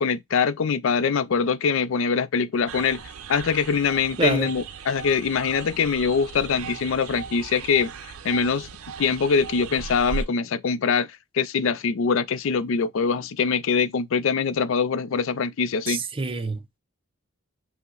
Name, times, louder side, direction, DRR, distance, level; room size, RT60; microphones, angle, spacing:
voice 1, 0.0-3.0 3.3-7.9 8.2-8.7 9.0-11.1 11.3-16.0, left 5 dB, 60° left, 0.4 m, -23 dB
sound 1, 2.7-10.3, right 5 dB, 75° right, 0.5 m, -37 dB
voice 2, 4.2-4.5 15.9-16.8, right 3 dB, 25° right, 0.5 m, -27 dB
5.4 x 2.1 x 3.8 m
head